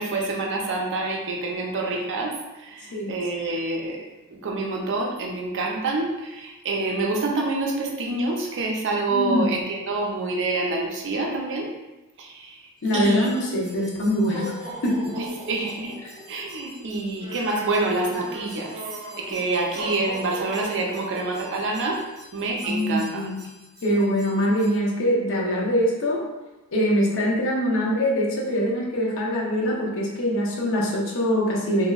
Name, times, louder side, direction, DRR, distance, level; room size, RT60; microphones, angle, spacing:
voice 1, 0.0-4.0 4.3-11.7 12.2-12.6 12.9-13.3 13.7-13.8 15.2-15.9 16.3-18.7 19.2-22.0 22.3-23.2, right 2 dB, 60° right, -1 dB, 0.5 m, -27 dB
voice 2, 9.1-9.5 12.8-14.5 14.8-15.1 16.0-16.1 22.6-23.4 23.8-26.2 26.7-31.9, equal, 65° left, -2 dB, 0.6 m, -23 dB
sound 1, 12.8-24.7, right 1 dB, 20° right, 0.8 m, -39 dB
2.9 x 2.5 x 2.3 m, 1.0 s
head